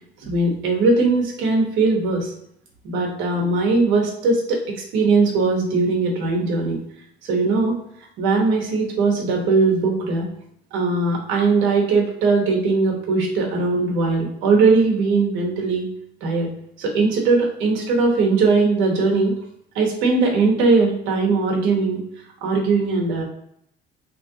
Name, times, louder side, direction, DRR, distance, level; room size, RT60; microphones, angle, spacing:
voice 1, 0.2-2.3 2.8-4.6 4.9-6.8 7.3-7.8 8.2-10.3 10.7-15.8 16.2-16.5 16.8-19.3 19.7-22.0 22.4-23.2, right 3 dB, 80° right, -1 dB, 1.2 m, -19 dB
3.1 x 2.5 x 3.7 m, 0.74 s
cardioid pair, 150°, 19 cm